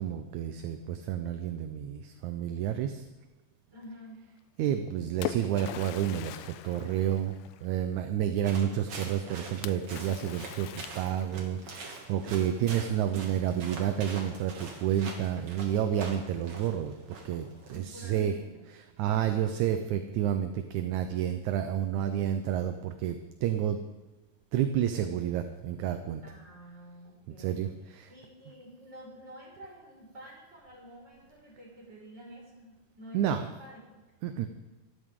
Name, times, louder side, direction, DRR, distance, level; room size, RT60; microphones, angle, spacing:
voice 1, 0.0-3.1 4.6-7.4 7.6-18.3 18.7-23.8 24.5-26.2 27.4-28.1 33.1-33.5 34.2-34.5, right 10 dB, 75° right, 7 dB, 2.1 m, -30 dB
voice 2, 3.7-4.2 12.2-12.3 17.7-18.7 19.4-19.5 26.2-34.0, equal, 35° right, -3 dB, 6.0 m, -49 dB
Splash splatter, 4.7-7.8 9.6-11.6, left 12 dB, 85° left, 1.5 m, -41 dB
sound 1, 8.4-17.8, right 3 dB, 60° right, 3.6 m, -44 dB
25.5 x 13.0 x 3.8 m, 1.1 s
omnidirectional pair, 3.6 m